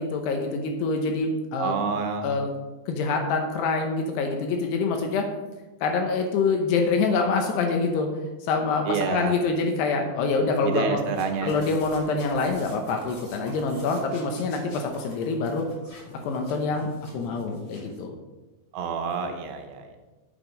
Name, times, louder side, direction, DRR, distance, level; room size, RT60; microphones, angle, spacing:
voice 1, 0.0-1.7 2.2-2.5 2.9-5.3 5.8-8.1 8.4-11.0 11.4-15.7 16.2-16.9 17.1-18.2, left 4 dB, 75° left, 3 dB, 2.6 m, -25 dB
voice 2, 1.6-2.3 8.9-9.4 10.6-11.6 18.7-20.0, right 5 dB, 75° right, 5 dB, 2.8 m, -28 dB
sound 1, 11.0-18.0, left 1 dB, 35° left, 2.4 m, -47 dB
8.5 x 8.0 x 5.2 m, 1.2 s
omnidirectional pair, 5.7 m